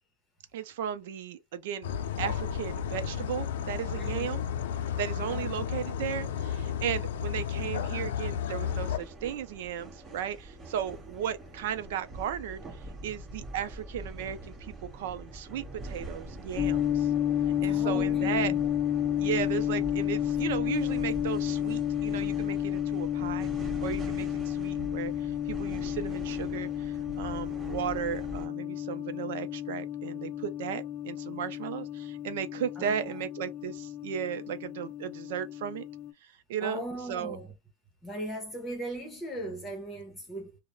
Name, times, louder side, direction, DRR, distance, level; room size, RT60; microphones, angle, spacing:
voice 1, 0.5-1.9 2.2-4.4 5.0-12.6 13.0-17.1 17.6-18.5 19.2-23.5 23.8-35.9 36.5-36.8 37.1-37.4, right 9 dB, 70° right, 0.5 m, -35 dB
sound 1, 1.8-9.0, left 8 dB, 85° left, 0.4 m, -33 dB
voice 2, 4.0-4.3 5.3-5.5 17.6-18.6 32.8-33.1 36.6-37.5 38.0-40.6, right 1 dB, 10° left, 0.9 m, -38 dB
sound 2, 8.6-28.5, right 1 dB, 25° right, 1.2 m, -43 dB
sound 3, 16.6-36.1, left 11 dB, 50° left, 0.7 m, -31 dB
2.3 x 2.1 x 3.0 m
supercardioid pair, 155°, 0 cm